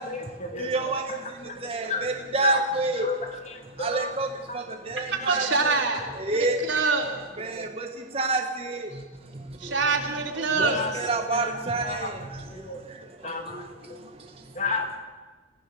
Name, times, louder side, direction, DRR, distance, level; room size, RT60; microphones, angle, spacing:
voice 1, 0.1-0.7 1.1-1.2 1.5-1.6 1.9-2.0 2.4-2.6 3.0-3.2 3.5-4.1 10.6-10.9 11.3-11.5 11.8-12.1 12.5-12.8 13.2-13.6 13.9-14.0 14.6-14.9, left 3 dB, 40° left, 5 dB, 2.5 m, -31 dB
voice 2, 0.6-1.0 1.6-3.1 3.8-4.3 4.5-5.5 6.3-6.6 7.4-7.9 8.1-8.9 10.6-12.1, right 3 dB, 30° right, 3 dB, 1.5 m, -27 dB
voice 3, 5.0-6.0 6.7-7.1 9.6-10.8, right 4 dB, 85° right, 1 dB, 3.8 m, -25 dB
26.5 x 16.0 x 7.1 m, 1.3 s
head